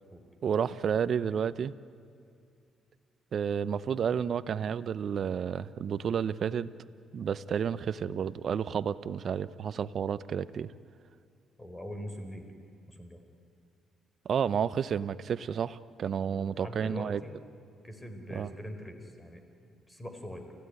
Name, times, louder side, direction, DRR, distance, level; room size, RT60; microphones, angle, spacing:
voice 1, 0.4-1.7 3.3-6.7 7.1-10.7 14.3-17.2 18.3-18.5, right 7 dB, 55° right, 16 dB, 0.7 m, -31 dB
voice 2, 11.6-12.5 12.9-13.2 16.2-17.3 17.8-19.4 19.9-20.5, equal, 15° left, 6 dB, 4.3 m, -42 dB
28.5 x 15.5 x 9.9 m, 2.4 s
cardioid pair, 90°, 0 cm